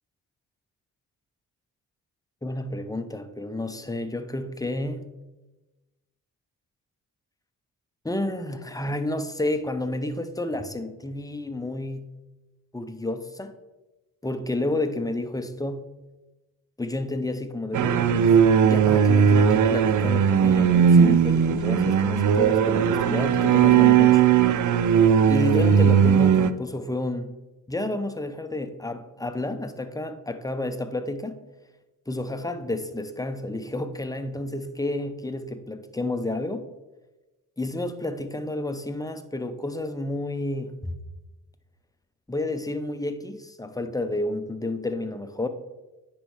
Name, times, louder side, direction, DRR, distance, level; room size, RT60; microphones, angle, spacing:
voice 1, 2.4-5.1 8.0-12.1 12.7-13.6 14.2-15.8 16.8-18.3 18.6-24.2 25.3-27.3 27.7-31.4 32.1-36.7 37.6-40.9 42.3-45.5, left 2 dB, 10° left, 0.7 m, -30 dB
sound 1, 17.7-26.5, right 7 dB, 50° right, 0.5 m, -18 dB
9.9 x 3.4 x 3.2 m
supercardioid pair, 45°, 39 cm